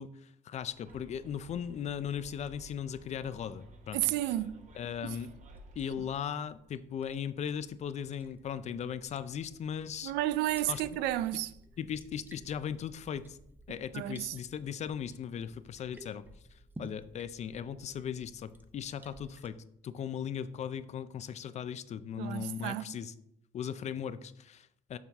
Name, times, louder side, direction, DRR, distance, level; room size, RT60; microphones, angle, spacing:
voice 1, 0.0-4.0 4.8-5.3 5.8-10.1 10.7-10.8 11.8-13.4 13.7-23.1 23.5-25.0, left 8 dB, 40° left, 0.4 m, -38 dB
Liquid, 0.5-19.5, right 1 dB, 10° right, 0.7 m, -57 dB
Bus, 0.9-6.1, right 2 dB, 45° right, 1.0 m, -54 dB
voice 2, 3.9-4.6 5.0-5.2 10.0-11.5 13.9-14.3 22.2-23.0, right 14 dB, 90° right, 0.4 m, -32 dB
7.1 x 5.6 x 3.5 m
cardioid pair, 110°, 17 cm